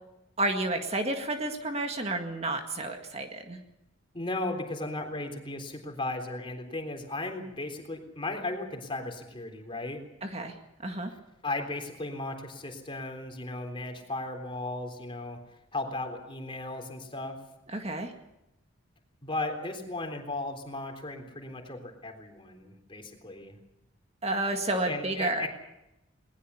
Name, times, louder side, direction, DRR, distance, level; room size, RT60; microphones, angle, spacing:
voice 1, 0.4-3.6 10.2-10.5 10.8-11.1 17.7-18.1 24.2-25.5, right 2 dB, 35° right, 5 dB, 1.9 m, -30 dB
voice 2, 4.1-10.0 11.4-15.4 15.7-17.4 19.2-23.6 24.9-25.5, left 2 dB, 25° left, 4 dB, 3.7 m, -36 dB
21.0 x 20.0 x 7.1 m, 0.87 s
head